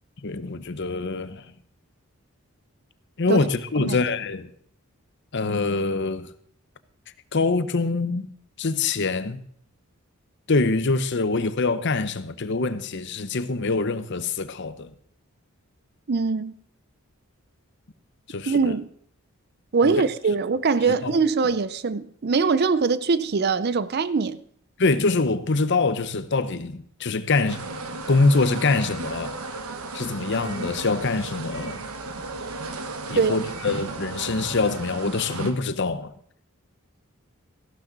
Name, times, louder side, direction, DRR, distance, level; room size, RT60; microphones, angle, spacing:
voice 1, 0.2-1.5 3.2-4.5 5.3-6.3 7.3-8.3 8.6-9.4 10.5-14.9 18.3-18.7 19.8-20.0 20.9-21.2 21.4-21.6 24.8-27.6 28.1-29.4 29.9-31.9 33.1-36.1, left 3 dB, 50° left, 0.7 m, -24 dB
voice 2, 16.1-16.5 18.5-18.9 19.7-24.4 33.1-33.4, right 4 dB, 45° right, 0.5 m, -22 dB
sound 1, 27.5-35.5, right 3 dB, 75° right, 1.3 m, -34 dB
14.5 x 12.0 x 3.9 m
head